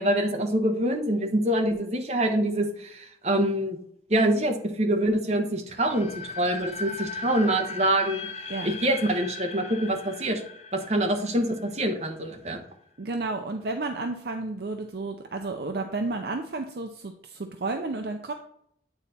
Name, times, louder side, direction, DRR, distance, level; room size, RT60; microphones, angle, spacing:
voice 1, 0.0-3.8 4.1-8.3 8.6-10.4 10.7-12.6, right 1 dB, 35° right, 3 dB, 1.0 m, -25 dB
sound 1, 5.7-12.6, left 4 dB, 35° left, 0.6 m, -39 dB
voice 2, 13.0-18.3, right 3 dB, 60° right, 5 dB, 0.5 m, -32 dB
9.0 x 4.1 x 4.1 m, 0.69 s
head